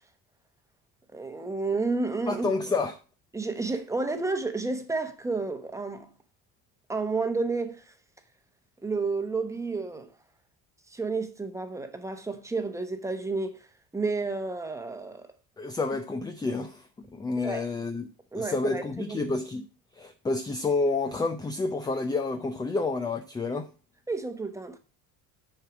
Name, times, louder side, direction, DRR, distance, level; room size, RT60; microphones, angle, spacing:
voice 1, 1.1-2.5 3.3-6.1 6.9-7.8 8.8-10.1 10.9-13.6 13.9-15.3 17.4-17.6 18.3-18.8 19.1-19.3 24.1-24.8, right 3 dB, 10° right, 1.0 m, -31 dB
voice 2, 2.3-3.0 15.6-16.9 17.1-18.1 18.3-19.6 20.0-23.7, left 3 dB, 10° left, 0.5 m, -29 dB
10.5 x 4.7 x 6.0 m
cardioid pair, 165°, 37 cm